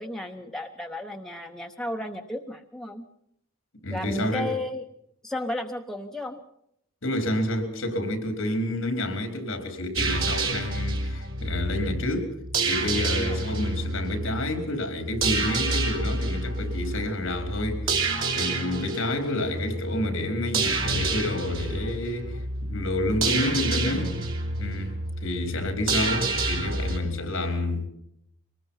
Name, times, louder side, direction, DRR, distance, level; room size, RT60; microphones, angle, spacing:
voice 1, 0.0-3.0 3.9-4.8 5.2-6.4 13.1-13.4 23.9-24.2, left 1 dB, ahead, 0.9 m, -33 dB
voice 2, 3.8-4.6 7.0-12.4 12.6-24.1 24.6-27.9, left 1 dB, 65° left, 4.3 m, -29 dB
sound 1, 10.0-27.0, right 3 dB, 70° right, 3.2 m, -29 dB
23.5 x 20.0 x 5.7 m
head